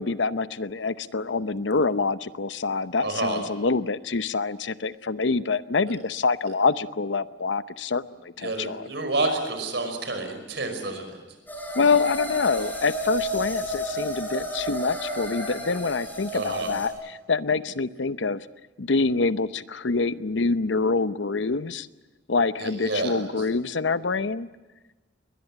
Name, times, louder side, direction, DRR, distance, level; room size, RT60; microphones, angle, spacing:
voice 1, 0.0-8.9 11.7-18.5 18.8-21.9 22.3-24.5, left 4 dB, 80° left, 14 dB, 0.8 m, -26 dB
voice 2, 3.0-3.4 8.4-11.2 16.3-16.7 22.6-23.2, right 2 dB, 70° right, 6 dB, 5.4 m, -29 dB
sound 1, 11.5-16.9, equal, 10° left, 7.7 m, -32 dB
21.5 x 20.5 x 10.0 m, 1.2 s
head